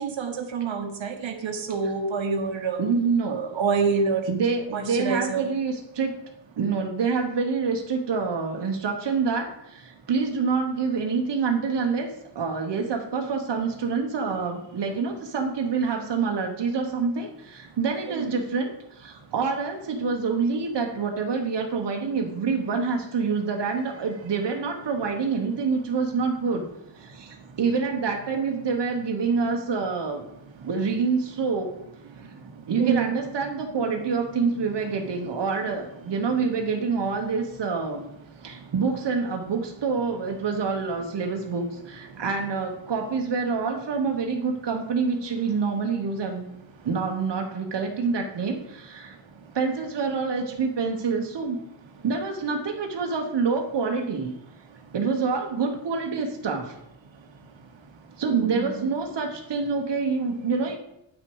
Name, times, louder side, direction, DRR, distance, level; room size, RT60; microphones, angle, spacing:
voice 1, 0.0-2.8 3.3-4.3 4.7-5.5 18.1-18.3 27.5-27.6 30.6-30.7 32.1-33.1 38.5-38.7 42.1-42.2 58.3-58.9, right 5 dB, 85° right, 5 dB, 1.2 m, -27 dB
voice 2, 2.8-3.4 4.3-6.2 6.6-26.7 27.0-30.2 30.6-31.7 32.2-32.3 32.7-38.1 38.4-46.4 46.8-49.1 49.5-51.6 52.0-54.3 54.9-56.7 58.2-60.8, right 5 dB, 65° right, 2 dB, 1.1 m, -27 dB
9.2 x 6.1 x 4.7 m, 0.82 s
wide cardioid pair, 130°, 45 cm